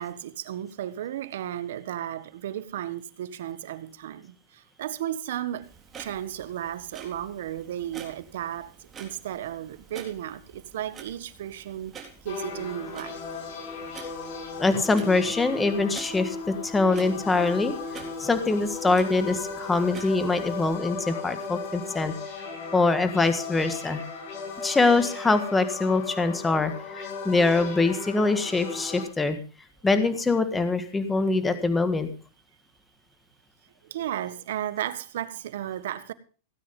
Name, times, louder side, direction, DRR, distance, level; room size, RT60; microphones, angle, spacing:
voice 1, 0.0-5.7 6.0-8.7 9.0-13.2 21.7-22.0 33.9-36.1, right 11 dB, 75° right, 1.4 m, -34 dB
Clock, 5.6-20.8, right 6 dB, 20° right, 3.7 m, -48 dB
sound 1, 12.3-29.0, left 4 dB, 55° left, 6.0 m, -36 dB
voice 2, 14.6-22.1 22.7-24.0 24.6-29.4 29.8-32.1, left 3 dB, 10° left, 1.7 m, -24 dB
17.0 x 9.3 x 5.3 m
supercardioid pair, 135°, 0 cm